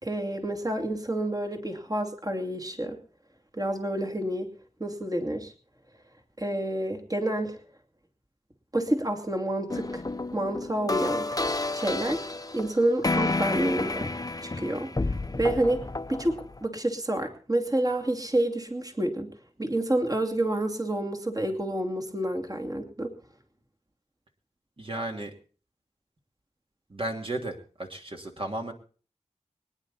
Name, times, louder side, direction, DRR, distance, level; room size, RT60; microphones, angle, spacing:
voice 1, 0.0-3.0 3.5-4.5 4.8-5.5 6.4-7.6 8.7-10.0 10.3-11.4 11.7-14.1 14.4-15.8 16.1-19.3 19.6-23.1, right 1 dB, 30° right, 5 dB, 2.7 m, -29 dB
sound 1, 9.7-16.6, left 2 dB, 30° left, 0.8 m, -30 dB
voice 2, 24.8-25.3 26.9-28.7, right 1 dB, 45° right, 2 dB, 2.7 m, -34 dB
24.5 x 10.0 x 4.2 m, 0.40 s
wide cardioid pair, 50°, 12 cm